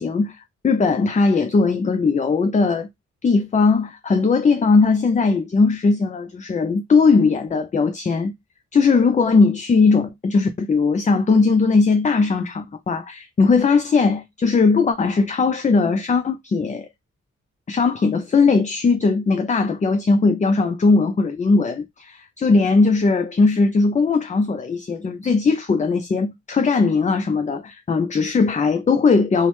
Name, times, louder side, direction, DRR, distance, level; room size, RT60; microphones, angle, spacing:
voice 1, 0.0-2.9 3.2-8.3 8.7-16.9 17.7-29.5, left 4 dB, 25° left, 0.4 m, -19 dB
2.8 x 2.1 x 3.0 m
cardioid pair, 50°, 30 cm